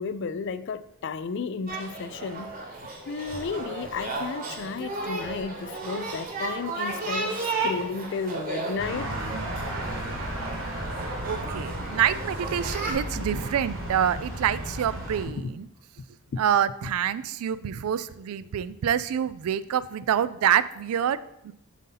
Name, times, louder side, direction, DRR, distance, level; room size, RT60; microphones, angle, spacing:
voice 1, 0.0-2.5 3.1-9.2 13.2-13.4 15.3-15.4 16.3-16.4, left 5 dB, 50° left, 13 dB, 0.3 m, -33 dB
sound 1, 1.7-12.9, right 3 dB, 40° right, 1.1 m, -34 dB
sound 2, 8.8-15.2, right 1 dB, 60° right, 1.4 m, -34 dB
voice 2, 11.2-15.7 16.4-21.5, right 9 dB, 80° right, 16 dB, 0.3 m, -26 dB
7.3 x 2.7 x 5.6 m, 0.81 s
head